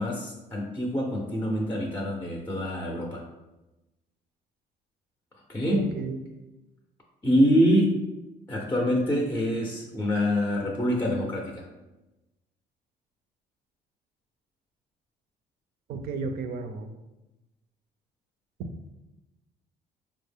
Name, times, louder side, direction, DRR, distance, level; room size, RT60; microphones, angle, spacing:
voice 1, 0.0-3.2 5.5-5.9 7.2-7.9 8.5-11.7, equal, 10° left, -1 dB, 0.5 m, -25 dB
voice 2, 5.7-6.2 15.9-16.9 18.6-18.7, right 4 dB, 70° right, 7 dB, 0.5 m, -33 dB
4.5 x 2.1 x 3.4 m, 1.0 s
cardioid pair, 110°, 17 cm